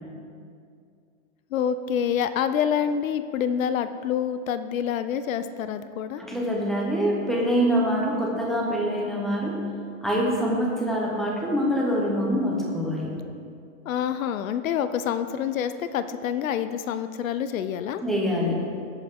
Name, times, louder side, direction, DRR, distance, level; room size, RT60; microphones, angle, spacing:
voice 1, 1.5-6.2 13.8-18.0, left 8 dB, 80° left, 11 dB, 0.8 m, -27 dB
voice 2, 6.2-9.6 10.0-13.2 18.0-18.7, equal, ahead, -3 dB, 1.0 m, -25 dB
19.5 x 8.3 x 3.8 m, 2.3 s
supercardioid pair, 175°, 40 cm